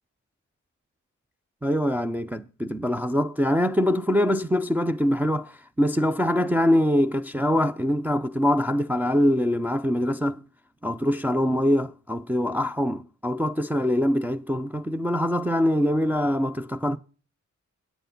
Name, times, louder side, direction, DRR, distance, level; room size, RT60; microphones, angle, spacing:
voice 1, 1.6-10.4 10.8-17.0, equal, 5° right, 0.4 m, -24 dB
9.0 x 8.2 x 5.2 m
wide cardioid pair, 150°, 30 cm